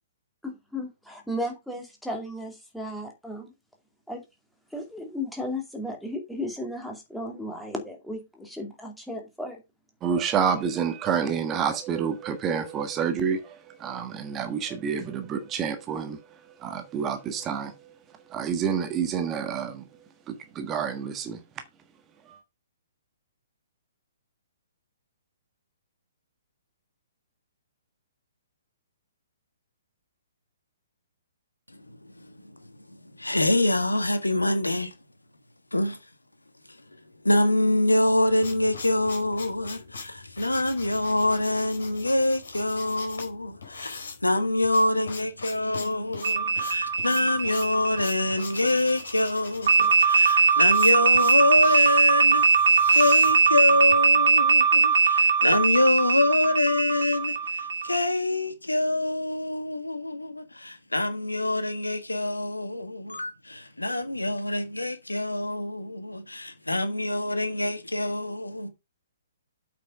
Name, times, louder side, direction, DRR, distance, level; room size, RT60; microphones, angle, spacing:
voice 1, 0.4-3.5 4.1-4.2 4.7-9.6, left 1 dB, ahead, 2.4 m, -35 dB
voice 2, 10.0-13.5 13.8-16.2 16.6-17.7 18.3-19.8 20.3-21.4, right 7 dB, 20° right, 1.3 m, -28 dB
voice 3, 32.0-32.6 33.2-34.9 35.7-36.0 37.2-68.7, left 1 dB, 80° left, 1.7 m, -25 dB
sound 1, 38.0-54.0, left 5 dB, 60° left, 4.4 m, -41 dB
sound 2, 46.2-48.8 49.7-58.0, right 4 dB, 55° right, 2.4 m, -21 dB
8.2 x 5.9 x 5.3 m
figure-of-eight pair, 125°, 0 cm